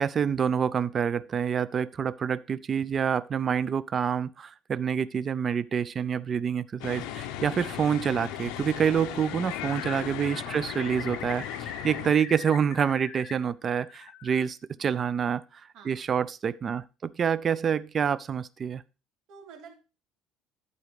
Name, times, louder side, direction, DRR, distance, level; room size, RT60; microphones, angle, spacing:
voice 1, 0.0-18.8, right 7 dB, 25° right, 0.3 m, -27 dB
sound 1, 6.8-12.1, left 11 dB, 85° left, 0.7 m, -37 dB
Bird, 8.8-9.4 9.6-13.3 13.6-14.5, left 7 dB, 45° left, 1.1 m, -43 dB
voice 2, 10.4-10.8 12.3-12.4 14.7-15.0 15.7-16.1 19.3-19.8, right 6 dB, 60° right, 2.7 m, -51 dB
11.0 x 4.0 x 5.0 m
cardioid pair, 175°, 0 cm